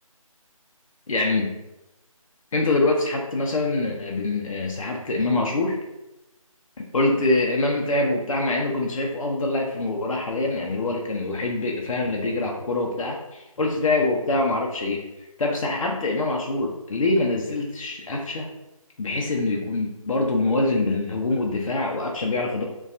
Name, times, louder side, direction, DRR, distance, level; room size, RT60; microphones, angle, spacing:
voice 1, 1.1-1.6 2.5-5.8 6.9-15.0 15.4-18.5 19.0-22.6, left 2 dB, 65° left, 0 dB, 0.4 m, -24 dB
2.5 x 2.2 x 2.4 m, 0.97 s
figure-of-eight pair, 160°, 18 cm